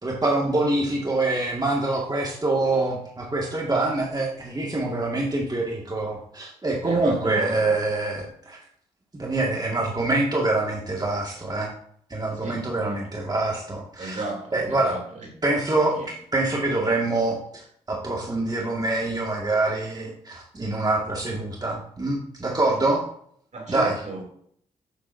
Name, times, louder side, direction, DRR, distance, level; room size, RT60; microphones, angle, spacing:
voice 1, 0.0-8.6 9.2-11.7 12.1-14.2 14.5-14.9 15.4-23.0 23.7-23.9, right 2 dB, 25° right, -2 dB, 1.9 m, -25 dB
voice 2, 6.8-7.7 12.4-13.2 14.0-15.3 16.0-16.1 23.5-24.2, right 3 dB, 50° right, 1 dB, 2.9 m, -34 dB
9.9 x 6.7 x 2.7 m, 0.64 s
hypercardioid pair, 40°, 15 cm